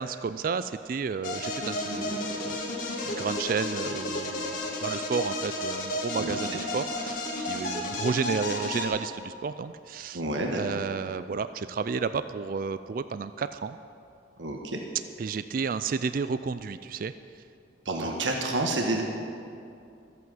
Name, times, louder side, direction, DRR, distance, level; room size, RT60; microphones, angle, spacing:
voice 1, 0.0-2.6 3.0-10.2 10.6-13.8 15.2-17.1, right 5 dB, 45° right, 12 dB, 0.3 m, -32 dB
sound 1, 1.2-8.9, left 1 dB, 45° left, 1.8 m, -32 dB
voice 2, 10.1-10.6 14.4-14.8 17.8-19.0, right 2 dB, 85° right, 1 dB, 1.3 m, -29 dB
14.0 x 8.3 x 7.6 m, 2.5 s
head